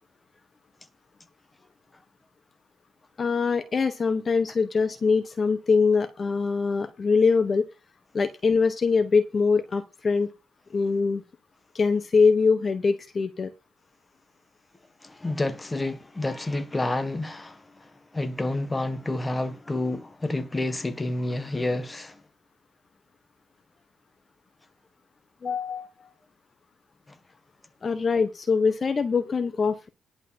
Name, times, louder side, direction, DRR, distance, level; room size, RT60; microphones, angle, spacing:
voice 1, 3.2-7.6 8.1-10.3 10.7-11.2 11.7-13.5 25.4-26.1 27.8-29.9, left 4 dB, 40° left, 1.2 m, -23 dB
voice 2, 15.0-22.2 27.1-27.2, left 2 dB, 15° left, 1.5 m, -29 dB
11.0 x 4.9 x 7.4 m
cardioid pair, 90°, 0 cm